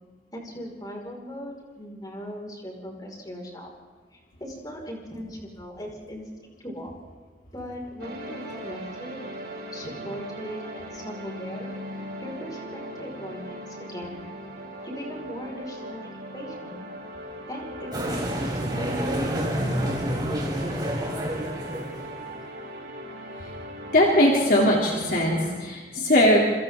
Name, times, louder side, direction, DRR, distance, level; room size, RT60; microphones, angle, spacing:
voice 1, 0.3-3.7 4.1-6.2 6.6-7.0 7.5-9.2 9.7-11.7 12.2-14.2 14.8-16.7 17.5-20.9, equal, 20° left, -1 dB, 5.6 m, -39 dB
sound 1, 8.0-25.6, equal, 60° right, 7.9 m, -39 dB
sound 2, 17.9-22.3, equal, 25° right, 4.1 m, -28 dB
voice 2, 23.9-26.4, left 1 dB, 50° left, -2 dB, 3.3 m, -20 dB
28.5 x 26.5 x 3.9 m, 1.5 s
head